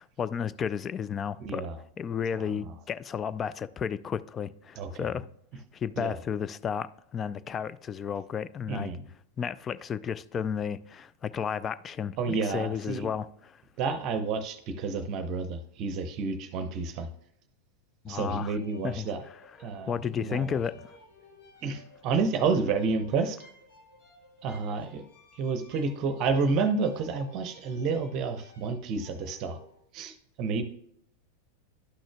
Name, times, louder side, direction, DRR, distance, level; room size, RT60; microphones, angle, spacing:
voice 1, 0.0-1.6 2.0-5.3 5.7-8.9 9.4-13.3 18.0-18.6 18.8-19.1 19.6-20.9, left 7 dB, 25° left, 0.3 m, -33 dB
voice 2, 1.4-1.8 2.3-2.7 4.8-5.1 6.0-6.2 8.7-9.1 12.2-13.1 13.8-17.1 18.1-19.2 19.6-20.6 21.6-23.4 24.4-25.0 25.3-29.6 29.9-30.6, right 4 dB, 40° right, 0.7 m, -30 dB
sound 1, 18.5-29.8, left 3 dB, 60° left, 1.6 m, -55 dB
11.5 x 6.2 x 2.2 m
figure-of-eight pair, 90°, 0 cm